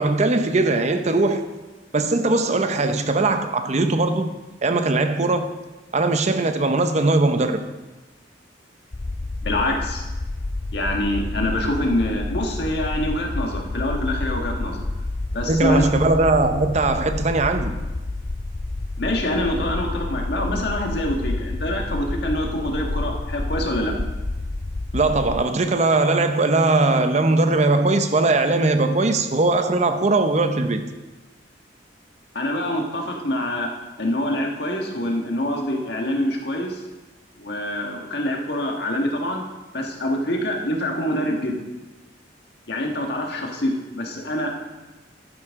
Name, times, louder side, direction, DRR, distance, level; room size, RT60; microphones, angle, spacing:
voice 1, 0.0-1.4 1.9-4.3 4.6-5.5 5.9-7.6 15.5-17.8 24.9-30.9, right 2 dB, 40° right, 0.7 m, -20 dB
sound 1, 8.9-25.4, left 2 dB, 25° left, 0.3 m, -29 dB
voice 2, 9.4-10.0 10.7-14.8 15.3-15.8 19.0-23.9 32.3-33.7 34.0-36.8 37.4-39.4 39.7-41.6 42.7-44.5, left 1 dB, 60° left, 1.7 m, -25 dB
12.0 x 9.8 x 3.7 m
head